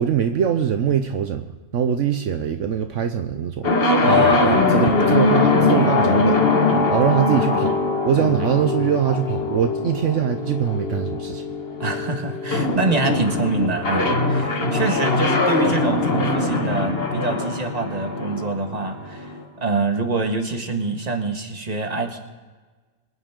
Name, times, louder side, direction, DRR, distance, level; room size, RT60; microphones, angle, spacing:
voice 1, 0.0-7.8 8.0-11.5, right 9 dB, 70° right, 7 dB, 1.1 m, -23 dB
sound 1, 3.6-19.4, left 3 dB, 50° left, 1.6 m, -21 dB
voice 2, 4.0-5.2 5.5-6.2 6.7-7.1 8.2-8.4 11.8-19.3 19.6-22.2, right 3 dB, 30° right, 4 dB, 1.7 m, -25 dB
24.5 x 9.9 x 3.7 m, 1.4 s
omnidirectional pair, 1.3 m